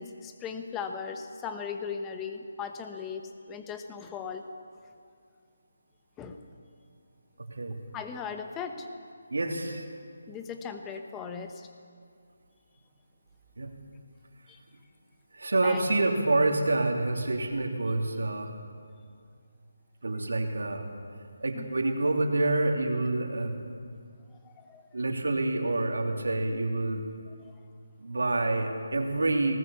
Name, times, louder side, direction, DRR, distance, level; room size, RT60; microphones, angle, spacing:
voice 1, 0.0-4.4 6.2-6.5 7.9-8.9 10.3-11.7 14.5-14.6 15.6-15.9 21.5-21.7 24.4-24.9 27.4-27.5, left 6 dB, 10° left, 6 dB, 1.0 m, -38 dB
voice 2, 7.5-7.9 9.3-9.8 13.6-13.7 15.3-18.5 20.0-20.9 21.4-23.6 24.9-27.1 28.0-29.6, right 2 dB, 90° right, 3 dB, 3.1 m, -27 dB
19.0 x 19.0 x 7.2 m, 2.2 s
hypercardioid pair, 170°, 0 cm